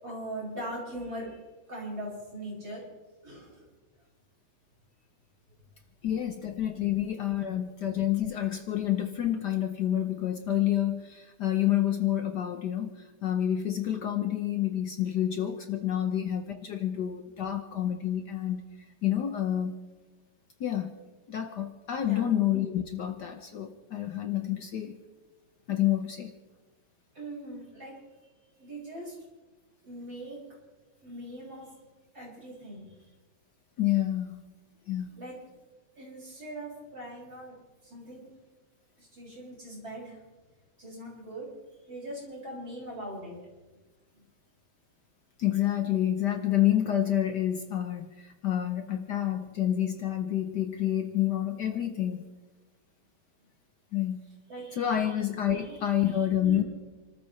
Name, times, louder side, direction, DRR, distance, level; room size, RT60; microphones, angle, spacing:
voice 1, 0.0-1.4 1.7-2.8 3.2-3.7 22.0-22.3 27.1-28.0 28.6-29.2 29.8-30.4 31.0-31.8 32.1-33.0 35.2-35.4 36.0-37.6 37.8-38.3 39.0-40.2 40.8-41.5 41.9-43.4 44.1-44.2 54.5-55.1 55.5-56.7, right 1 dB, 45° right, -5 dB, 7.4 m, -41 dB
voice 2, 6.0-18.6 19.0-19.8 20.6-20.9 21.3-25.0 25.7-26.3 33.8-34.5 34.9-35.1 45.4-52.3 53.9-54.2 54.7-56.6, left 11 dB, 60° left, 6 dB, 1.4 m, -28 dB
29.0 x 13.5 x 3.2 m, 1.2 s
omnidirectional pair, 2.3 m